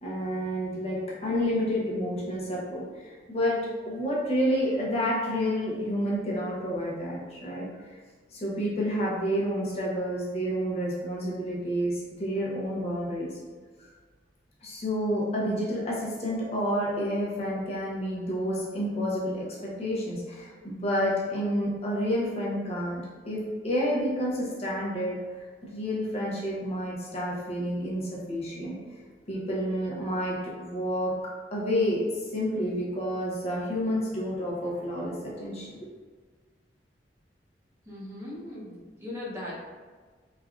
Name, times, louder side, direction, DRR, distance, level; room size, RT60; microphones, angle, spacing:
voice 1, 0.0-3.6 3.9-7.7 8.3-13.3 14.6-25.2 25.7-28.8 29.3-31.1 31.5-35.7, equal, 35° left, -5 dB, 0.6 m, -29 dB
voice 2, 37.9-39.6, left 1 dB, 15° right, -7 dB, 0.6 m, -39 dB
3.2 x 2.3 x 2.3 m, 1.5 s
head